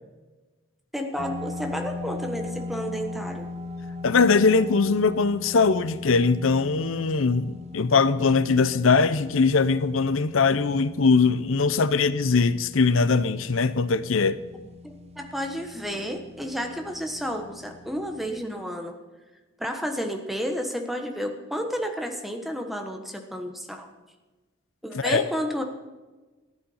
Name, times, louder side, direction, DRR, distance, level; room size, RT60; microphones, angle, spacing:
voice 1, 0.9-3.5 14.8-18.9 19.6-23.9 24.8-25.6, equal, ahead, 1.3 m, -31 dB
sound 1, 1.2-18.4, left 3 dB, 30° right, 1.0 m, -40 dB
voice 2, 4.0-14.4 24.9-25.2, left 4 dB, 85° left, 0.6 m, -21 dB
14.0 x 10.5 x 5.6 m
head